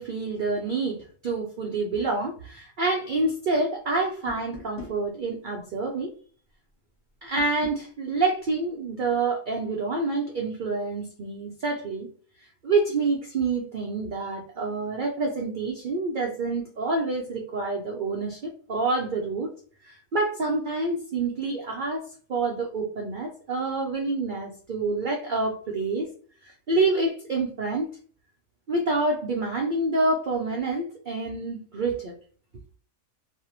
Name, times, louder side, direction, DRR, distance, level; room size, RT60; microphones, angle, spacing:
voice 1, 0.0-6.1 7.2-12.1 12.6-19.5 19.8-26.1 26.4-27.9 28.7-32.1, right 3 dB, 75° right, 0.4 m, -27 dB
sound 1, 4.3-5.0 7.4-7.8, left 4 dB, 25° left, 0.5 m, -41 dB
2.5 x 2.0 x 2.8 m
omnidirectional pair, 1.5 m